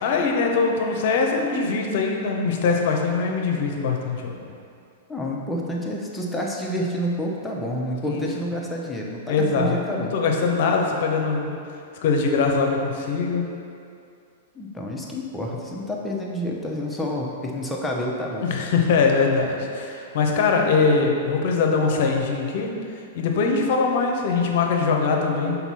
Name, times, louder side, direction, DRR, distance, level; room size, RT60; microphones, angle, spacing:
voice 1, 0.0-4.4 8.1-8.2 9.3-11.5 12.0-13.4 18.4-22.7 23.1-25.6, left 4 dB, 55° left, 2 dB, 0.8 m, -22 dB
voice 2, 5.1-10.1 14.5-18.5, equal, 5° left, -2 dB, 0.9 m, -29 dB
5.8 x 4.1 x 4.2 m, 2.5 s
figure-of-eight pair, 105°, 0 cm